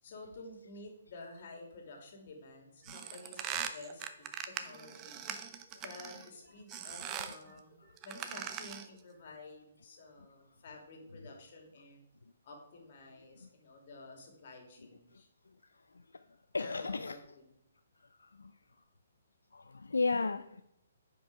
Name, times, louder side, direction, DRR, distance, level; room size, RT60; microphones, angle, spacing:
voice 1, 0.0-5.2 5.8-12.0 12.4-15.3 16.6-17.4, left 2 dB, 50° left, 2 dB, 2.6 m, -51 dB
sound 1, 2.8-6.3 6.7-7.4 8.0-9.0, right 9 dB, 25° right, 0.7 m, -41 dB
voice 2, 16.5-17.2 18.1-18.5 19.5-20.6, left 3 dB, 85° left, 10 dB, 0.4 m, -35 dB
9.1 x 5.3 x 4.7 m, 0.80 s
hypercardioid pair, 140°, 0 cm